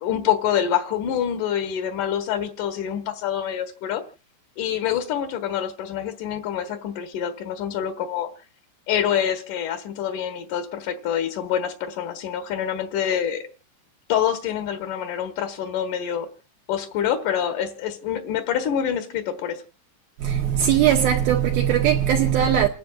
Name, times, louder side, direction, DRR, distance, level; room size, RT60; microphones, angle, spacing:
voice 1, 0.0-4.0 4.6-8.3 8.9-13.4 14.1-16.3 16.7-19.6, left 9 dB, 65° left, 2.2 m, -26 dB
voice 2, 20.2-22.7, right 10 dB, 75° right, 2.3 m, -19 dB
29.0 x 10.5 x 2.5 m
omnidirectional pair, 5.3 m